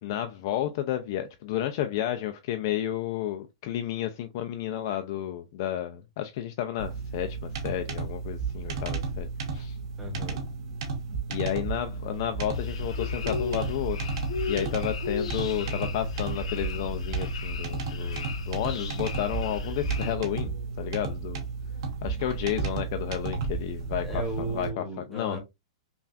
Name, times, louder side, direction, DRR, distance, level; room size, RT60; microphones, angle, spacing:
voice 1, 0.0-9.8 11.3-14.1 14.5-20.5 20.8-21.5 22.0-24.8 25.1-25.4, left 11 dB, 35° left, 0.3 m, -32 dB
sound 1, 6.8-24.7, right 5 dB, 45° right, 1.0 m, -33 dB
voice 2, 10.0-10.4 24.0-25.4, right 2 dB, ahead, 1.0 m, -34 dB
sound 2, 12.5-20.1, left 4 dB, 85° left, 0.9 m, -34 dB
5.6 x 2.3 x 2.4 m
supercardioid pair, 175°, 3 cm